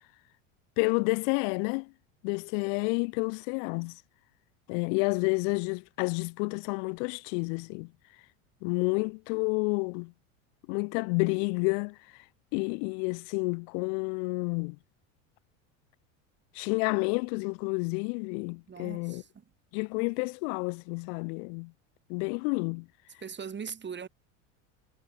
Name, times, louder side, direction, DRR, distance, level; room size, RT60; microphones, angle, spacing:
voice 1, 0.8-1.9 2.2-4.0 4.7-7.9 8.6-10.1 10.7-12.0 12.5-14.8 16.5-19.2 19.7-21.7 22.1-22.9, left 40 dB or more, 65° left, 3.3 m, -30 dB
voice 2, 18.7-19.5 23.2-24.1, right 6 dB, 25° right, 6.0 m, -40 dB
hypercardioid pair, 100°, 40 cm